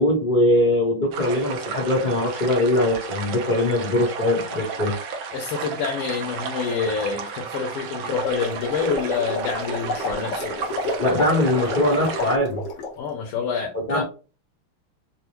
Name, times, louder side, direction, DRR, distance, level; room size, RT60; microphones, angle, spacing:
voice 1, 0.0-4.9 11.0-12.6 13.7-14.0, left 1 dB, 40° left, -1 dB, 0.7 m, -21 dB
sound 1, 1.1-12.4, right 5 dB, 75° right, 1.4 m, -33 dB
voice 2, 5.3-10.5 13.0-14.0, left 5 dB, 85° left, 0 dB, 1.7 m, -27 dB
sound 2, 8.0-13.0, left 3 dB, 60° left, 1.3 m, -30 dB
4.6 x 2.1 x 3.0 m, 0.34 s
omnidirectional pair, 2.4 m